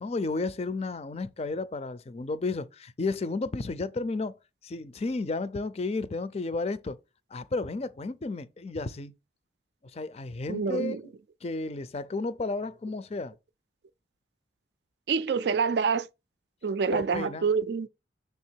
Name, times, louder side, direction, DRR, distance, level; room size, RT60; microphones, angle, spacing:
voice 1, 0.0-4.4 4.6-7.0 7.3-9.1 9.9-11.0 11.4-13.3 16.9-17.5, left 3 dB, 35° left, 0.4 m, -32 dB
voice 2, 10.5-11.0 15.1-16.1 16.6-17.9, right 5 dB, 60° right, 0.4 m, -27 dB
6.5 x 3.4 x 4.5 m
head